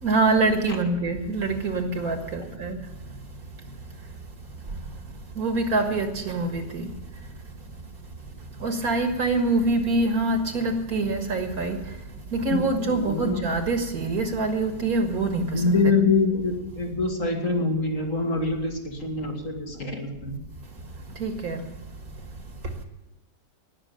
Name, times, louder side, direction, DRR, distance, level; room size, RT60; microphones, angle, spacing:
voice 1, 0.0-2.8 5.3-6.9 8.6-11.9 12.3-15.8 21.2-21.6, right 3 dB, 55° right, 2.0 m, -25 dB
voice 2, 12.5-13.4 15.5-20.4, left 3 dB, 45° left, 2.5 m, -25 dB
19.0 x 6.6 x 9.1 m
omnidirectional pair, 1.9 m